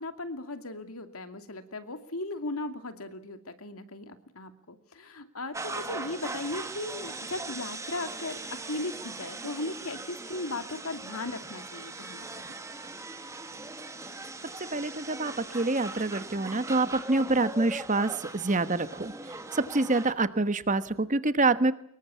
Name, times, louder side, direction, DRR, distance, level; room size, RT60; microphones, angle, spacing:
voice 1, 0.0-12.4, left 2 dB, 80° left, 8 dB, 2.6 m, -37 dB
sound 1, 5.5-20.1, right 3 dB, 15° right, 2.0 m, -40 dB
voice 2, 14.7-19.1 19.6-21.7, right 2 dB, 35° right, 12 dB, 1.2 m, -26 dB
24.5 x 22.0 x 8.5 m, 0.69 s
head